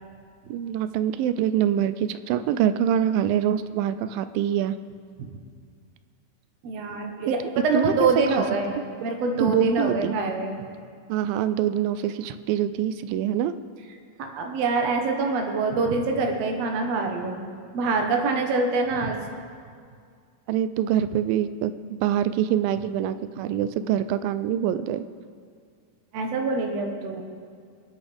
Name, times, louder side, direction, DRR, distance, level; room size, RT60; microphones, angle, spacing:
voice 1, 0.5-4.8 7.7-8.1 9.4-10.2 11.1-13.5 18.3-18.4 20.5-25.1, right 10 dB, 80° right, 12 dB, 2.1 m, -25 dB
voice 2, 6.6-8.7 9.0-10.6 14.2-17.4 17.7-19.2 26.1-27.2, right 3 dB, 60° right, 2 dB, 1.8 m, -25 dB
25.0 x 8.9 x 3.5 m, 2.2 s
omnidirectional pair, 4.4 m